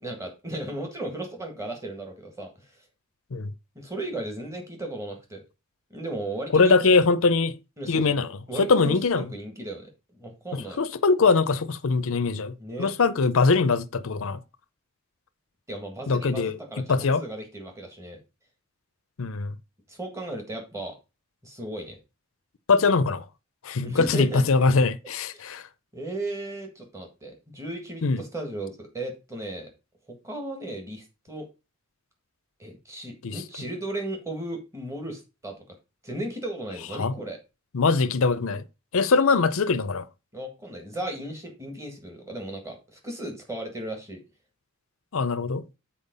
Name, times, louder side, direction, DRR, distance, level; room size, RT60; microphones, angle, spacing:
voice 1, 0.0-2.8 3.8-5.4 5.9-7.0 7.8-8.2 8.5-10.8 12.6-12.9 15.7-18.2 19.9-21.0 21.4-22.0 23.8-24.5 25.3-25.4 25.9-29.7 30.2-31.5 32.6-35.6 36.0-37.4 40.3-44.2, right 1 dB, 15° right, 1.7 m, -35 dB
voice 2, 6.5-7.5 7.9-8.3 8.6-9.3 10.5-14.4 16.1-16.6 16.9-17.2 19.2-19.5 22.7-23.2 23.6-25.6 28.0-28.2 33.2-33.4 37.0-37.1 37.7-38.6 38.9-40.1 45.1-45.6, left 4 dB, 65° left, 0.6 m, -22 dB
7.2 x 4.4 x 5.3 m
head